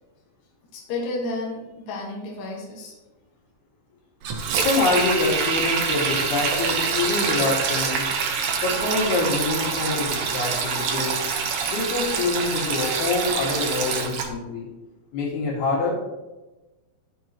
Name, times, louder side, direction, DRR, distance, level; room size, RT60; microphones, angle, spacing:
voice 1, 0.7-2.9, left 2 dB, 65° left, -2 dB, 3.1 m, -31 dB
Sink (filling or washing), 4.2-14.3, right 5 dB, 75° right, 1.5 m, -25 dB
voice 2, 4.6-8.1 8.6-11.2 11.7-14.7 15.1-15.9, left 3 dB, 90° left, -3 dB, 4.1 m, -25 dB
11.0 x 7.6 x 3.0 m, 1.1 s
omnidirectional pair, 4.4 m